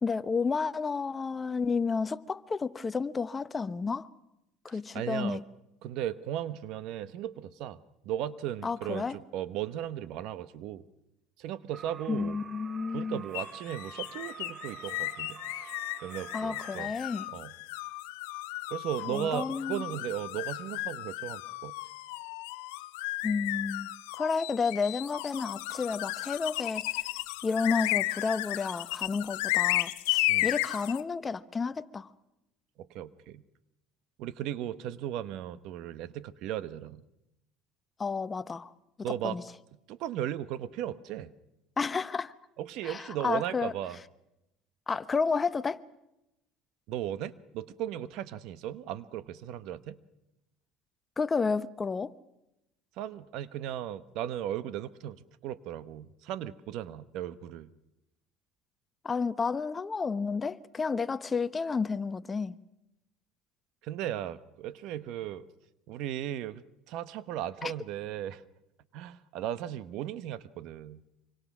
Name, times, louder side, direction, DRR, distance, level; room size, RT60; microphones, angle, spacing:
voice 1, 0.0-4.1 4.6-5.4 8.6-9.2 12.1-13.2 16.3-17.3 19.1-19.8 23.2-23.9 24.2-27.0 27.4-32.1 38.0-38.7 39.2-39.4 41.8-42.3 42.8-43.7 44.9-45.8 51.2-52.1 59.0-62.6 67.6-67.7, left 5 dB, 25° left, 0.8 m, -31 dB
voice 2, 4.7-5.4 5.8-10.8 11.4-12.4 12.9-15.4 16.0-16.9 17.3-17.5 18.7-21.7 30.3-30.5 32.8-33.4 34.2-37.0 39.0-39.4 39.9-41.3 42.6-44.0 46.9-50.0 53.0-57.7 63.8-65.5 65.9-68.4 68.9-71.0, right 11 dB, 70° right, 1.0 m, -36 dB
sound 1, 11.7-16.8, right 6 dB, 30° right, 0.9 m, -47 dB
sound 2, 13.3-31.0, left 20 dB, 90° left, 0.8 m, -34 dB
25.5 x 25.0 x 6.1 m
supercardioid pair, 110°, 0 cm